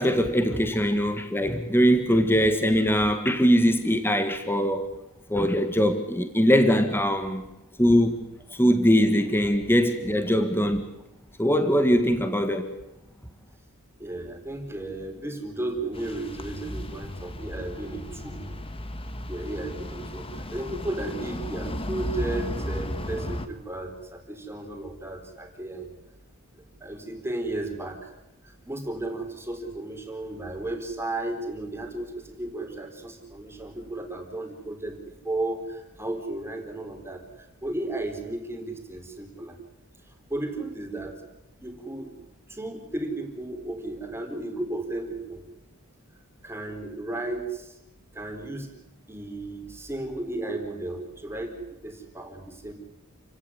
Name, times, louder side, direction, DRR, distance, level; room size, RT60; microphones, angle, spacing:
voice 1, 0.0-4.9 5.3-7.4 7.8-8.2 8.5-10.8 11.4-12.7, equal, 10° left, 1.8 m, -22 dB
voice 2, 14.0-18.5 19.3-25.9 26.6-28.1 28.4-35.0 35.2-39.6 40.3-41.2 41.6-42.1 42.5-45.4 46.4-47.8 48.1-48.7 49.1-52.7, right 2 dB, 10° right, 4.1 m, -34 dB
sound 1, 15.9-23.5, equal, 25° left, 1.9 m, -34 dB
29.0 x 17.5 x 9.8 m
head